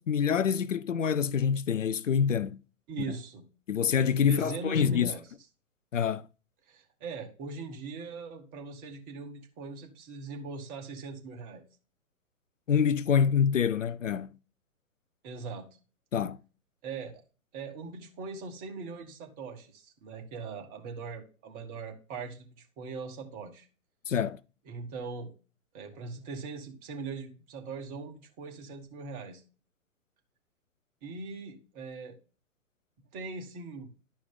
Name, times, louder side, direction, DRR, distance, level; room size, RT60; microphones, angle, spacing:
voice 1, 0.0-2.6 3.7-5.1 5.9-6.3 12.7-14.3 16.1-16.4 24.1-24.4, left 7 dB, 60° left, 0.5 m, -26 dB
voice 2, 2.9-3.5 4.2-5.2 6.7-11.6 15.2-15.7 16.8-17.2 17.5-23.7 24.7-25.3 25.7-29.4 31.0-32.2 33.1-33.9, right 4 dB, 20° right, 1.2 m, -40 dB
11.5 x 5.1 x 3.7 m
figure-of-eight pair, 125°, 43 cm